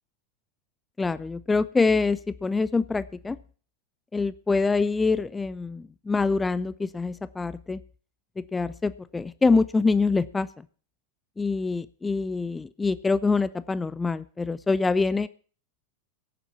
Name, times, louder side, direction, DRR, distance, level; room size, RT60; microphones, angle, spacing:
voice 1, 1.0-3.4 4.1-7.8 8.4-10.5 11.4-15.3, left 4 dB, 10° left, 17 dB, 0.6 m, -25 dB
17.0 x 7.3 x 7.2 m, 0.41 s
figure-of-eight pair, 90°, 0 cm